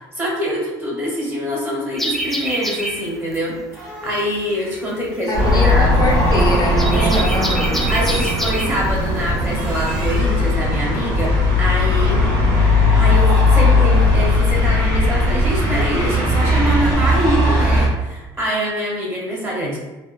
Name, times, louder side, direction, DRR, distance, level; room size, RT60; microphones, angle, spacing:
voice 1, 0.1-3.6 4.0-6.0 6.9-7.3 7.9-12.2 13.0-19.8, equal, 20° right, -4 dB, 1.0 m, -24 dB
sound 1, 2.0-10.2, right 1 dB, ahead, 0.3 m, -28 dB
sound 2, 3.7-6.5 9.2-10.7 13.7-14.6, right 1 dB, 50° right, 1.3 m, -39 dB
voice 2, 5.3-8.0, left 2 dB, 35° left, -2 dB, 0.7 m, -24 dB
sound 3, 5.3-17.9, left 2 dB, 75° right, 0.9 m, -17 dB
2.8 x 2.1 x 2.3 m, 1.2 s
supercardioid pair, 75°, 11 cm